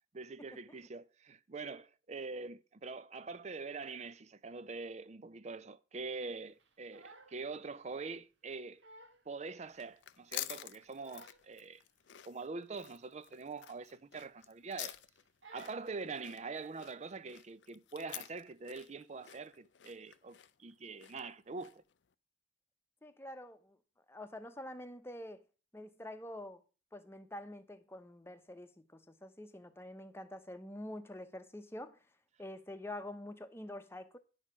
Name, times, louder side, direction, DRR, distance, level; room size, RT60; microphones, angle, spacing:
voice 1, 0.1-8.8 9.3-11.8 12.2-15.0 15.5-21.8, right 4 dB, 40° right, 0.5 m, -44 dB
Crying sobbing, 6.6-7.4 7.8-8.0 8.5-8.6 8.8-9.3 9.8-9.9 10.7-11.5 11.8-12.0 12.4-12.5 12.9-13.0 13.8-14.4 14.7-15.0 15.4-15.9, right 2 dB, 85° right, 1.4 m, -58 dB
sound 1, 9.7-21.9, left 14 dB, 75° left, 0.5 m, -49 dB
voice 2, 23.0-23.8 24.1-25.4 25.7-26.6 26.9-32.0 32.4-34.2, left 1 dB, 15° left, 0.9 m, -46 dB
10.5 x 6.5 x 6.1 m
head